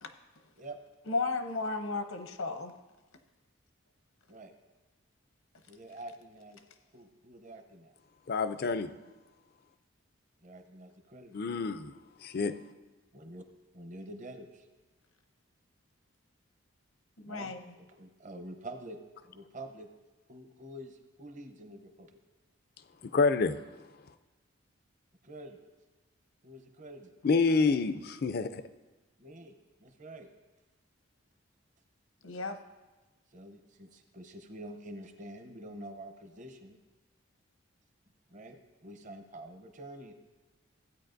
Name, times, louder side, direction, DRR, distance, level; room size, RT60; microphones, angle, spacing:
voice 1, 1.1-2.7 17.2-17.6 32.2-32.6, left 3 dB, 75° left, 7 dB, 0.8 m, -34 dB
voice 2, 5.7-6.6 6.9-7.9 10.4-11.6 13.1-13.4 13.7-14.7 17.2-19.0 19.2-19.9 20.3-22.2 25.2-25.6 26.4-27.1 29.2-30.3 33.3-36.8 38.3-38.6 38.8-40.1, right 1 dB, 35° right, 7 dB, 0.7 m, -47 dB
voice 3, 8.3-8.9 11.3-11.9 12.2-12.5 23.1-23.6 27.2-28.6, left 4 dB, 45° left, 12 dB, 0.4 m, -27 dB
16.0 x 9.0 x 2.6 m, 1.2 s
head